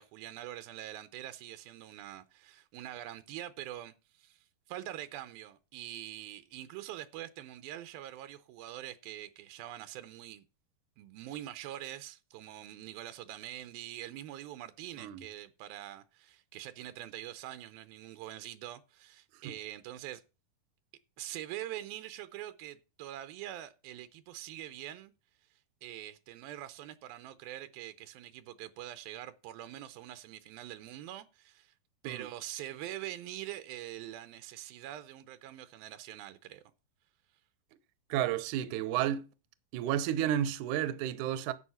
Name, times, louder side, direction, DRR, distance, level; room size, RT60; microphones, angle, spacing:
voice 1, 0.0-10.5 11.0-20.2 21.2-25.1 25.8-31.7 32.0-36.6, right 13 dB, 85° right, 2.6 m, -44 dB
voice 2, 38.1-39.3 39.7-41.5, right 11 dB, 70° right, 2.0 m, -31 dB
11.0 x 8.0 x 5.6 m
omnidirectional pair, 4.2 m